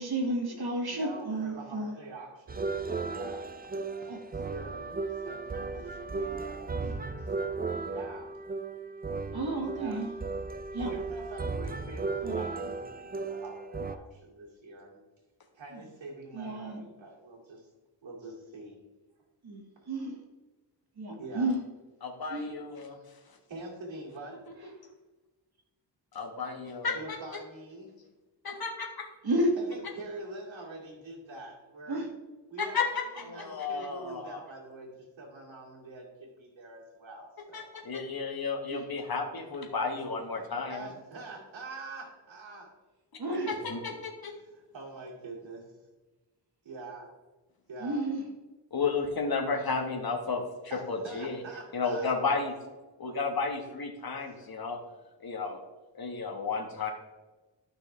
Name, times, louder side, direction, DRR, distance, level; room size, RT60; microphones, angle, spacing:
voice 1, 0.0-1.9 4.1-4.2 6.8-7.0 9.3-10.1 10.7-10.9 12.2-12.4 15.7-15.8 16.3-16.8 19.4-20.2 21.0-21.6 22.3-22.5 29.2-29.5 31.9-32.1 38.7-38.8 43.2-43.5 47.8-48.2, right 1 dB, 55° right, 2 dB, 1.9 m, -31 dB
voice 2, 0.9-3.5 4.4-8.3 9.7-10.1 10.8-15.0 15.5-17.7 18.0-18.8 21.2-21.5 22.9-23.0 23.5-24.4 26.9-27.9 29.6-32.0 32.5-37.6 40.7-42.7 44.3-45.7 46.6-47.1 47.7-48.0 50.7-52.1 54.1-54.5, right 2 dB, 80° right, -5 dB, 2.6 m, -45 dB
sound 1, 2.5-14.0, right 4 dB, 20° right, 0.5 m, -35 dB
voice 3, 22.0-23.0 26.1-27.2 28.4-29.1 32.6-32.9 33.2-34.4 37.5-40.9 43.5-44.3 48.7-50.4 50.9-51.4 51.7-52.5 53.0-54.8 55.2-55.6 56.0-56.9, left 4 dB, 55° left, 3 dB, 1.5 m, -32 dB
12.0 x 5.9 x 3.4 m, 1.2 s
wide cardioid pair, 105°, 45 cm